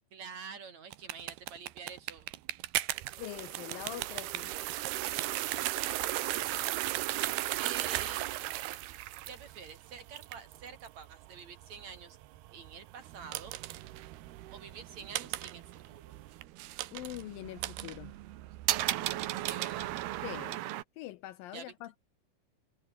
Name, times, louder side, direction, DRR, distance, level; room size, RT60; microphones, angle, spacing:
voice 1, 0.1-2.3 5.5-5.7 6.0-6.8 7.6-8.3 9.3-12.2 12.5-13.6 14.5-16.2 19.3-20.0 21.5-21.7, right 6 dB, 50° right, 3.5 m, -47 dB
sound 1, 0.9-20.8, right 16 dB, 85° right, 3.0 m, -36 dB
voice 2, 3.2-4.5 16.9-18.1 20.2-20.6 21.0-22.0, left 15 dB, 75° left, 2.2 m, -43 dB
omnidirectional pair, 4.5 m